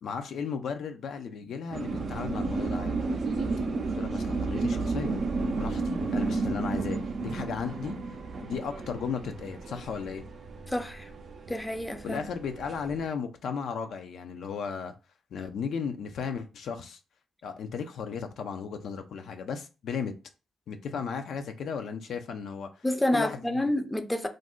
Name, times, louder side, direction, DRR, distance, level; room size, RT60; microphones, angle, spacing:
voice 1, 0.0-3.0 3.9-5.2 5.6-8.2 8.4-10.2 12.0-14.9 15.3-17.0 17.4-20.1 20.7-22.8 23.1-23.7, left 6 dB, 70° left, 0.3 m, -35 dB
sound 1, 1.7-13.1, right 3 dB, 55° right, 0.4 m, -32 dB
voice 2, 10.7-11.1 11.5-12.2 22.8-24.3, left 1 dB, 15° left, 0.5 m, -28 dB
2.4 x 2.0 x 3.6 m
supercardioid pair, 60°, 0 cm